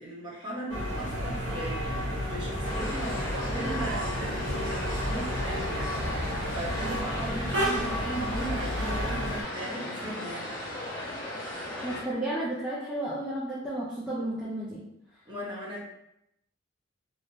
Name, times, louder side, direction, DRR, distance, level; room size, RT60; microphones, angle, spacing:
voice 1, 0.0-10.5 15.2-15.8, right 1 dB, 25° right, -6 dB, 0.8 m, -38 dB
sound 1, 0.7-9.4, equal, 75° right, 1.0 m, -31 dB
sound 2, 2.6-12.0, left 1 dB, 80° left, 0.9 m, -37 dB
voice 2, 11.7-14.8, right 1 dB, 5° right, -8 dB, 0.4 m, -33 dB
2.9 x 2.0 x 2.6 m, 0.81 s
head